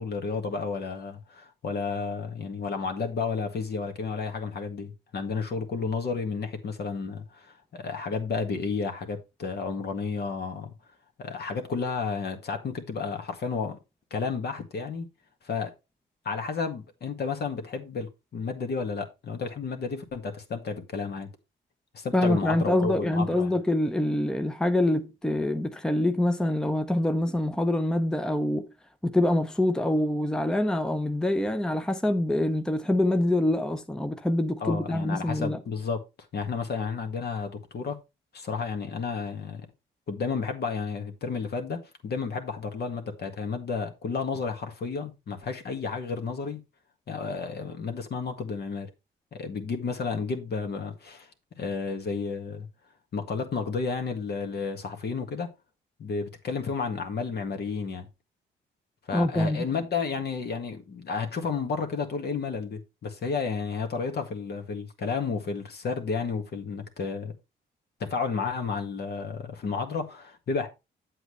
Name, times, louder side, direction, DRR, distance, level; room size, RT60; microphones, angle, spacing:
voice 1, 0.0-10.7 11.2-13.8 14.1-15.1 15.4-15.7 16.3-21.3 21.9-23.5 34.6-36.0 36.3-38.0 38.3-39.7 40.1-46.6 47.1-48.9 49.3-51.3 51.6-52.7 53.1-55.5 56.0-58.1 59.1-67.4 68.0-70.7, left 5 dB, 55° left, 1.8 m, -32 dB
voice 2, 22.1-28.7 29.0-35.6 59.1-59.6, left 1 dB, 5° left, 0.7 m, -25 dB
8.1 x 7.9 x 3.2 m
cardioid pair, 90°, 20 cm